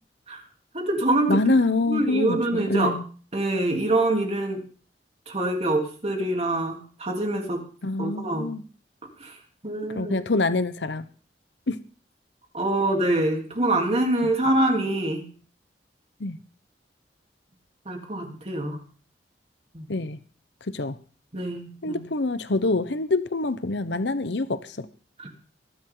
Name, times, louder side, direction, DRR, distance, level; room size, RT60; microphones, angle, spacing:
voice 1, 0.7-1.5 1.9-2.9 3.3-4.6 5.3-7.6 8.0-8.5 9.2-9.4 9.6-10.2 12.5-15.3 17.9-18.8 19.7-19.9 21.3-22.0 25.2-25.3, right 1 dB, 35° right, 2 dB, 3.6 m, -25 dB
voice 2, 1.3-3.0 7.8-8.6 9.9-11.1 11.7-11.8 16.2-16.4 19.9-20.2 20.7-21.0 21.8-24.9, left 2 dB, 75° left, 13 dB, 1.0 m, -25 dB
22.0 x 12.0 x 3.9 m, 0.39 s
head